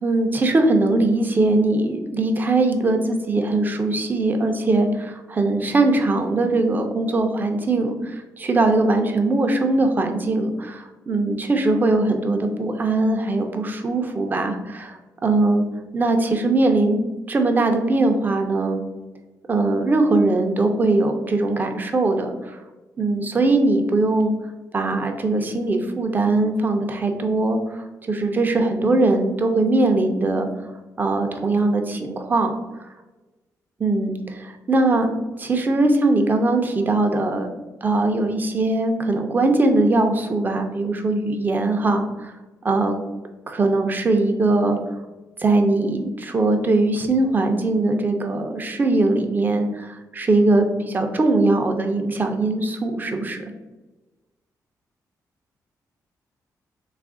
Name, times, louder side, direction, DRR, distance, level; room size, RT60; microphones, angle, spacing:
voice 1, 0.0-15.6 15.9-17.0 17.3-18.8 19.5-22.6 23.0-24.3 24.7-30.5 31.0-32.5 32.8-32.9 33.8-35.1 35.4-37.5 37.8-42.3 42.6-43.0 43.5-44.8 45.4-53.4, right 2 dB, 30° right, 5 dB, 0.5 m, -21 dB
3.2 x 2.4 x 3.6 m, 1.1 s
cardioid pair, 115°, 7 cm